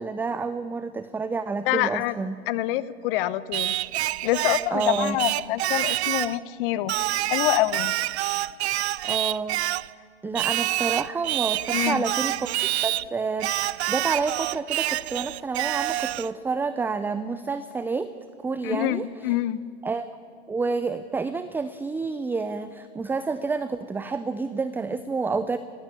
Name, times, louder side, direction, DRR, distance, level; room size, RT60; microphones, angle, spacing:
voice 1, 0.0-2.4 4.7-5.2 9.0-9.6 10.2-12.5 12.8-18.1 18.4-19.1 19.8-20.2 20.5-25.6, right 4 dB, 5° right, 12 dB, 0.5 m, -29 dB
voice 2, 1.7-2.1 2.5-3.7 4.2-6.9 7.3-7.9 11.7-12.0 18.6-19.6, left 15 dB, 50° left, 18 dB, 1.0 m, -26 dB
Singing, 3.5-6.4 6.9-9.9 10.3-13.1 13.4-16.3, right 15 dB, 70° right, 0.6 m, -27 dB
20.0 x 16.5 x 8.6 m, 2.3 s
hypercardioid pair, 120°, 34 cm